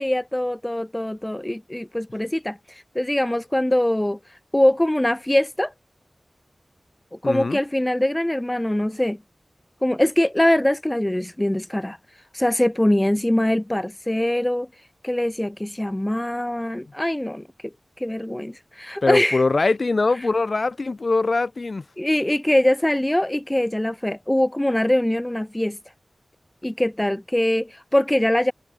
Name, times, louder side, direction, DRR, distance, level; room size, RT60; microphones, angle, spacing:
voice 1, 0.0-5.7 7.2-9.2 9.8-12.0 12.3-14.7 15.0-17.4 18.0-19.4 22.0-25.8 26.6-28.5, left 1 dB, 15° left, 0.6 m, -22 dB
voice 2, 7.2-7.6 19.0-21.8, left 3 dB, 55° left, 0.9 m, -22 dB
wide cardioid pair, 55°, 0 cm